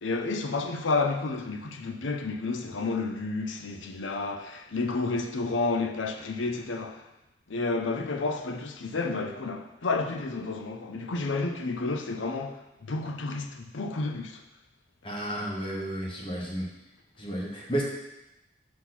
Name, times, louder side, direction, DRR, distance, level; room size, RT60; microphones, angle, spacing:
voice 1, 0.0-7.0 7.5-14.4, left 3 dB, 90° left, 0.6 m, -31 dB
voice 2, 15.0-16.7 17.2-17.8, right 1 dB, 30° left, 1.3 m, -32 dB
6.4 x 4.2 x 5.8 m
head